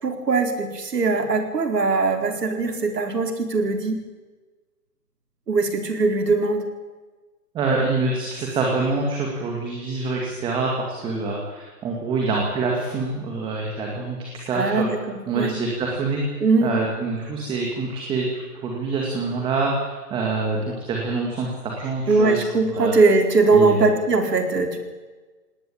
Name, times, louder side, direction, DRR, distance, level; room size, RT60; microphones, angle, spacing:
voice 1, 0.0-4.0 5.5-6.6 14.5-15.0 15.3-15.5 16.4-16.7 22.1-24.8, right 3 dB, 80° right, 5 dB, 4.5 m, -20 dB
voice 2, 7.5-14.9 15.3-22.4 22.8-22.9 23.5-23.9, right 3 dB, 10° right, -1 dB, 2.2 m, -26 dB
20.0 x 18.5 x 8.7 m, 1.3 s
hypercardioid pair, 160°, 47 cm